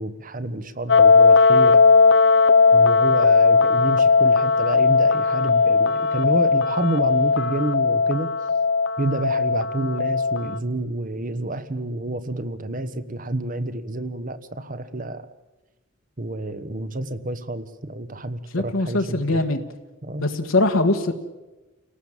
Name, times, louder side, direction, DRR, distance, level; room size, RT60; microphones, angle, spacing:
voice 1, 0.0-1.8 2.7-8.3 9.0-15.3 16.2-19.4 20.0-20.3, right 2 dB, 40° right, 12 dB, 1.3 m, -29 dB
sound 1, 0.9-10.6, left 4 dB, 60° left, 0.9 m, -17 dB
voice 2, 18.5-19.6 20.2-21.1, left 2 dB, 75° left, 3 dB, 1.7 m, -21 dB
29.5 x 18.5 x 7.4 m, 1.1 s
head